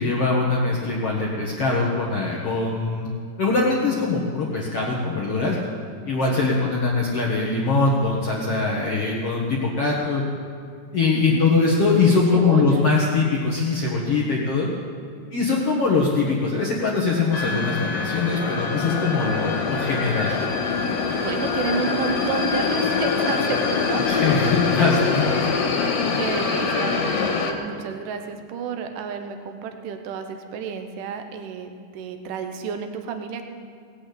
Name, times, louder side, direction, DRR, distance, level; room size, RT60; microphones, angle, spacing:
voice 1, 0.0-3.1 3.4-5.6 6.1-10.2 10.9-14.7 15.3-20.5 24.1-25.5, left 3 dB, 65° left, -4 dB, 1.4 m, -22 dB
voice 2, 11.1-11.4 12.3-13.2 14.1-14.2 15.5-15.9 21.1-24.5 26.2-33.4, right 6 dB, 75° right, 6 dB, 1.9 m, -31 dB
sound 1, 17.3-27.5, left 5 dB, 80° left, 3.7 m, -24 dB
18.5 x 8.7 x 8.5 m, 2.3 s
omnidirectional pair, 5.1 m